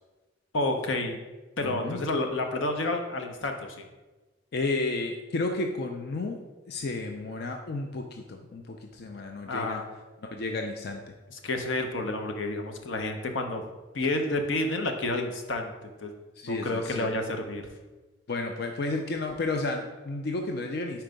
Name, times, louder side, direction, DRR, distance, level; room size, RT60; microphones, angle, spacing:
voice 1, 0.5-1.2 1.6-3.9 9.5-9.8 11.3-13.6 13.9-16.1 16.4-17.7, left 2 dB, 85° left, 5 dB, 0.7 m, -30 dB
voice 2, 1.6-2.0 4.5-6.4 6.7-9.8 10.3-11.0 16.4-17.1 18.3-21.0, left 2 dB, 55° left, 3 dB, 0.5 m, -32 dB
4.5 x 4.4 x 5.1 m, 1.2 s
head